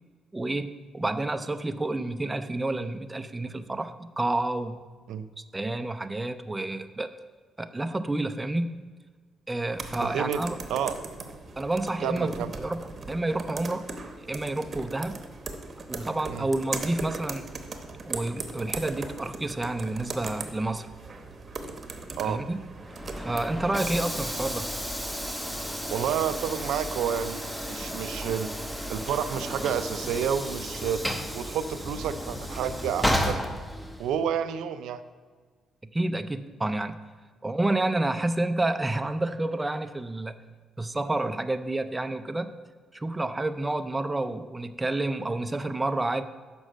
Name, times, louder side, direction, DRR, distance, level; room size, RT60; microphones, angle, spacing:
voice 1, 0.3-4.8 5.4-7.1 7.6-8.8 9.5-10.6 11.6-13.8 14.2-15.2 15.9-17.5 18.0-20.9 22.2-22.6 23.2-24.7 35.9-37.0 37.4-40.4 40.8-42.6 42.9-46.2, right 2 dB, 15° right, 9 dB, 0.4 m, -29 dB
sound 1, 9.7-23.5, right 3 dB, 35° right, 0.9 m, -39 dB
voice 2, 10.0-10.4 10.7-11.0 12.0-12.5 16.3-16.5 22.2-22.4 25.9-28.5 28.9-31.0 31.3-33.4 34.0-35.0, right 8 dB, 85° right, 11 dB, 0.4 m, -30 dB
Train / Sliding door, 22.8-34.2, equal, 5° left, 0.8 m, -33 dB
6.4 x 5.3 x 6.3 m, 1.5 s
cardioid pair, 90°, 0 cm